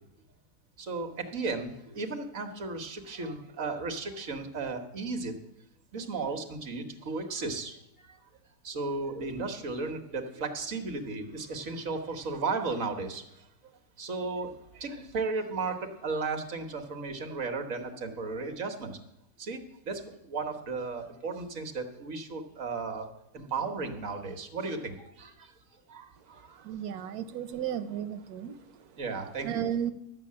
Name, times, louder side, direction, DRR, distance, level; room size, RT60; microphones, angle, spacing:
voice 1, 0.8-5.3 5.9-8.2 8.6-13.4 14.0-19.0 19.4-23.1 23.3-25.5 25.9-26.7 29.0-29.6, right 3 dB, 65° right, 5 dB, 1.7 m, -35 dB
voice 2, 26.6-28.6 29.4-29.9, right 9 dB, 90° right, 11 dB, 1.2 m, -33 dB
12.5 x 6.5 x 8.5 m, 0.82 s
omnidirectional pair, 1.5 m